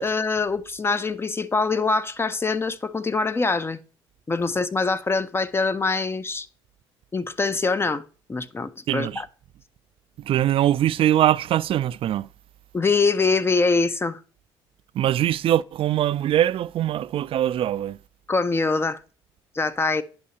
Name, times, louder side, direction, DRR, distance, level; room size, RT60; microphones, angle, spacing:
voice 1, 0.0-3.8 4.3-6.5 7.1-8.0 8.3-9.3 12.7-14.2 18.3-19.0 19.5-20.0, left 4 dB, 20° left, 0.5 m, -24 dB
voice 2, 8.9-9.2 10.2-12.3 15.0-18.0, right 12 dB, 55° right, 0.3 m, -22 dB
9.6 x 5.6 x 2.8 m
supercardioid pair, 85°, 11 cm